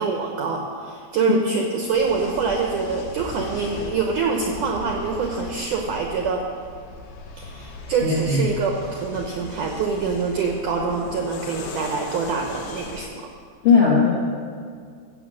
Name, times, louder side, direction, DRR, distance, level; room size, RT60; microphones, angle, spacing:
voice 1, 0.0-6.4 7.4-13.3, right 5 dB, 75° right, 1 dB, 1.9 m, -25 dB
sound 1, 1.9-13.0, left 3 dB, 80° left, 3.4 m, -38 dB
voice 2, 8.0-8.5 13.6-14.1, left 5 dB, 50° left, -4 dB, 1.7 m, -17 dB
15.0 x 8.0 x 6.3 m, 2.1 s
omnidirectional pair, 4.9 m